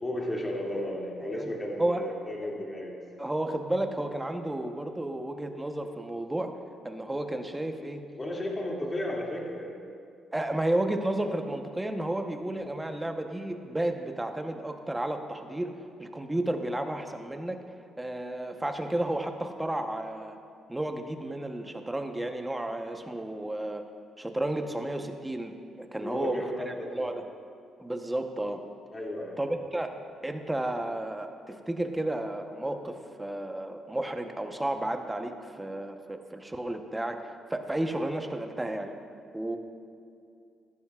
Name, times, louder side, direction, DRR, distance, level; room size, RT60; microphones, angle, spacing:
voice 1, 0.0-3.0 8.2-9.9 12.6-12.7 26.0-27.1 28.9-29.4, left 1 dB, 25° left, -3 dB, 2.4 m, -34 dB
voice 2, 3.2-6.5 6.8-8.0 10.3-15.7 16.0-17.6 18.0-20.4 20.7-23.8 24.2-25.5 25.8-26.4 26.9-27.2 27.8-28.6 29.4-29.9 30.2-38.9 39.3-39.6, right 1 dB, 10° right, 5 dB, 0.9 m, -32 dB
15.5 x 13.0 x 2.4 m, 2.4 s
cardioid pair, 90°, 0 cm